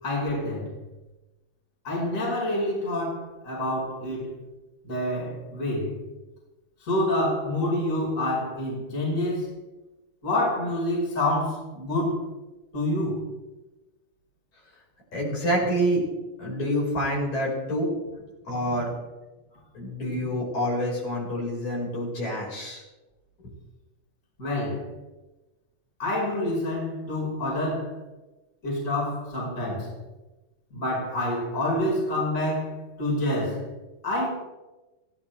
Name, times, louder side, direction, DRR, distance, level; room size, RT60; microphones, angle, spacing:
voice 1, 0.0-0.7 1.8-4.3 4.8-6.0 6.8-9.5 10.2-12.2 12.7-13.2 24.4-24.9 26.0-28.0 28.6-29.9 30.7-33.7 34.0-34.3, left 1 dB, 20° left, 5.5 m, -27 dB
voice 2, 15.1-16.0 16.4-17.9 18.4-18.9 19.7-22.8, equal, 45° left, 6.6 m, -27 dB
25.0 x 16.5 x 3.5 m
omnidirectional pair, 4.7 m